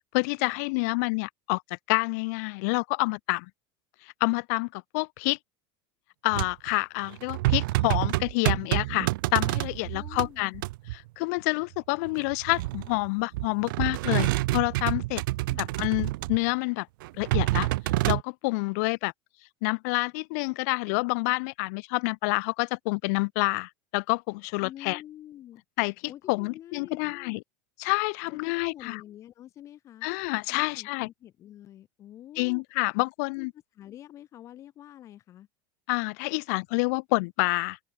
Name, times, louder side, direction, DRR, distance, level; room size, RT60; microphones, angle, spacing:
voice 1, 0.1-1.6 1.9-3.5 4.0-5.4 6.2-10.6 10.9-15.2 15.6-16.9 17.2-17.7 18.1-19.1 19.6-25.0 25.8-25.9 26.3-27.4 27.8-29.0 30.0-31.1 32.4-33.5 35.9-37.8, left 29 dB, 50° left, 0.4 m, -28 dB
sound 1, 6.3-6.7 7.1-10.3 10.5-11.0 12.1-13.1 13.3-16.5 17.0-18.2, right 19 dB, 75° right, 0.6 m, -28 dB
voice 2, 9.9-10.6 15.5-15.8 24.6-25.6 26.1-27.4 28.3-30.1 30.5-32.6 33.4-33.5 33.8-35.5, left 12 dB, 25° left, 5.3 m, -47 dB
supercardioid pair, 175°, 11 cm